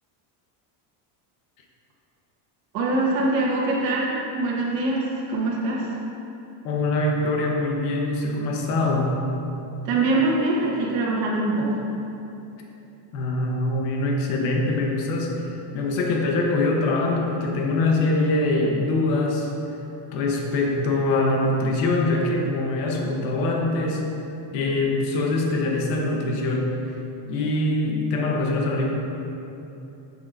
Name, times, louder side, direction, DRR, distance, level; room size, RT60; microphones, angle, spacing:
voice 1, 2.7-6.0 9.8-11.8, right 2 dB, 45° right, -5 dB, 1.3 m, -23 dB
voice 2, 6.6-9.1 13.1-19.5 20.1-24.1 24.5-26.7 27.3-28.9, left 2 dB, 85° left, 0 dB, 1.2 m, -23 dB
7.9 x 6.9 x 2.6 m, 2.9 s
cardioid pair, 170°, 49 cm